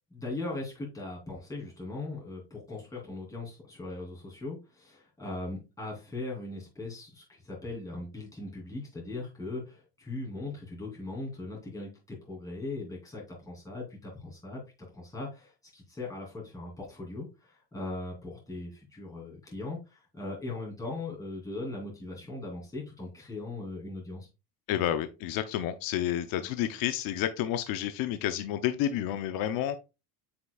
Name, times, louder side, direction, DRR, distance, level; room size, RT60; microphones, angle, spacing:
voice 1, 0.1-14.6 14.9-24.3, left 2 dB, 10° left, -5 dB, 2.9 m, -39 dB
voice 2, 24.7-29.8, left 11 dB, 60° left, 9 dB, 0.7 m, -30 dB
7.8 x 5.8 x 2.3 m, 0.28 s
cardioid pair, 150°, 39 cm